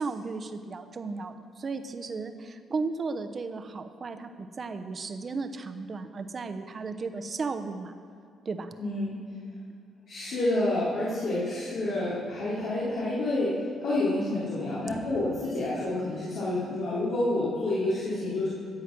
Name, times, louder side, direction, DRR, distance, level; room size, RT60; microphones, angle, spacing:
voice 1, 0.0-7.9 8.4-8.7, right 4 dB, 40° right, 9 dB, 0.9 m, -35 dB
voice 2, 8.8-9.1 10.1-13.6 13.8-18.5, left 2 dB, 80° left, -11 dB, 3.6 m, -28 dB
14.5 x 8.0 x 6.1 m, 2.5 s
cardioid pair, 90°, 0 cm